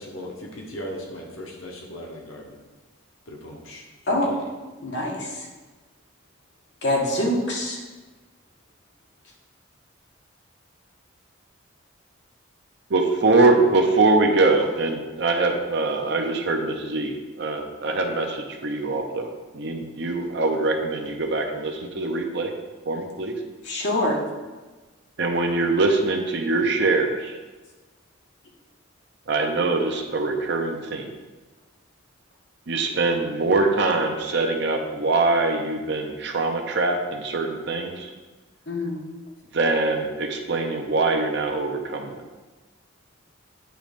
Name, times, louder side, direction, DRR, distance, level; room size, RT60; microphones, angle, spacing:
voice 1, 0.0-2.6 3.3-4.4, equal, 75° left, 0 dB, 1.0 m, -38 dB
voice 2, 4.8-5.3 6.8-7.8 23.7-24.2 38.7-38.9, left 1 dB, 55° left, -2 dB, 1.5 m, -24 dB
voice 3, 12.9-22.5 22.9-23.3 25.2-27.4 29.3-31.1 32.7-38.1 39.5-42.1, right 3 dB, 55° right, 3 dB, 0.7 m, -23 dB
8.9 x 3.1 x 5.1 m, 1.3 s
head